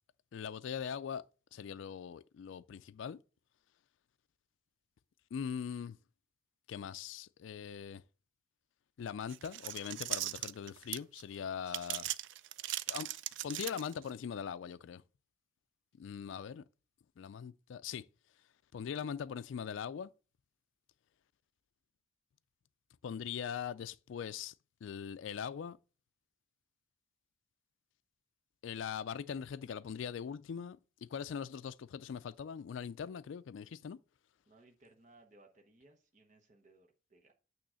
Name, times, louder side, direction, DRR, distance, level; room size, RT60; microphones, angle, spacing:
voice 1, 0.3-1.2 1.5-3.2 5.3-6.0 6.7-8.0 9.0-12.1 12.9-13.1 13.4-15.0 16.0-16.6 17.2-18.0 18.7-20.1 23.0-24.5 24.8-25.8 28.6-34.0, left 7 dB, 70° left, 0.3 m, -41 dB
sound 1, 9.3-11.2 11.7-14.1, right 14 dB, 65° right, 0.3 m, -39 dB
voice 2, 34.5-37.3, right 2 dB, 40° right, 1.0 m, -63 dB
8.8 x 3.1 x 6.2 m
head